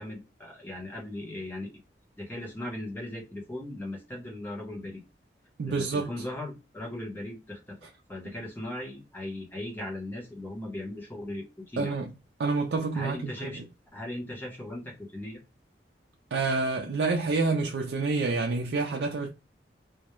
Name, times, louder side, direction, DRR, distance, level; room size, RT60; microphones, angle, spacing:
voice 1, 0.0-1.8 2.2-5.0 5.7-7.8 8.1-11.9 12.9-13.6 13.9-15.4, left 1 dB, 10° left, 0.7 m, -38 dB
voice 2, 5.6-6.1 11.8-12.1 12.4-13.6 16.3-19.3, right 3 dB, 70° right, 0.4 m, -28 dB
2.2 x 2.1 x 2.9 m
head